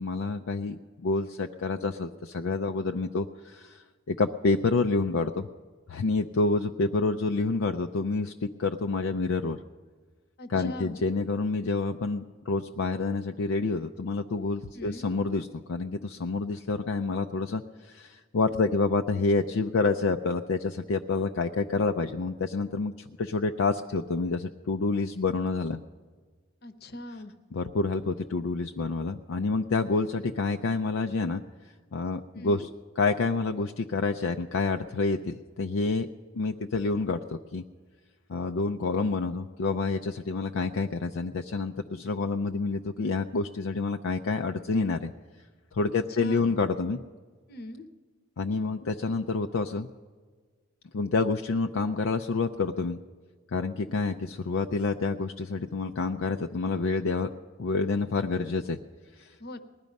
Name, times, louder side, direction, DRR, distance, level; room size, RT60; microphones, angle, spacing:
voice 1, 0.0-3.8 4.1-5.5 5.9-9.6 10.5-22.9 23.2-25.8 27.5-31.4 31.9-32.7 33.0-36.1 36.3-37.6 38.3-45.1 45.7-47.0 48.4-49.9 50.9-53.0 53.5-57.3 57.6-58.8 59.2-59.3, left 3 dB, 70° left, 5 dB, 0.5 m, -28 dB
voice 2, 10.4-11.0 14.7-15.1 26.6-27.3 32.3-32.7 46.0-46.5 47.5-47.9 59.4-59.6, left 1 dB, 50° left, 11 dB, 0.9 m, -41 dB
19.5 x 12.0 x 5.3 m, 1.5 s
head